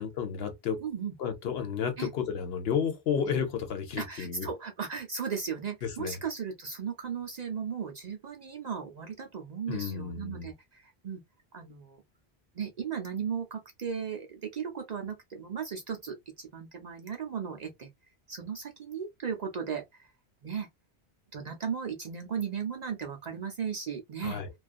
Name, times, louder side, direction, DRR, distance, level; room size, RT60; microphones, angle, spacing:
voice 1, 0.0-0.8 1.2-4.5 5.8-6.2 9.7-10.5 24.2-24.5, left 7 dB, 70° left, 0.9 m, -32 dB
voice 2, 0.8-1.1 2.0-2.1 4.0-11.2 11.5-12.0 12.5-17.9 18.3-20.1 20.4-20.7 21.3-24.4, right 7 dB, 50° right, 0.5 m, -36 dB
2.4 x 2.3 x 2.4 m
omnidirectional pair, 1.1 m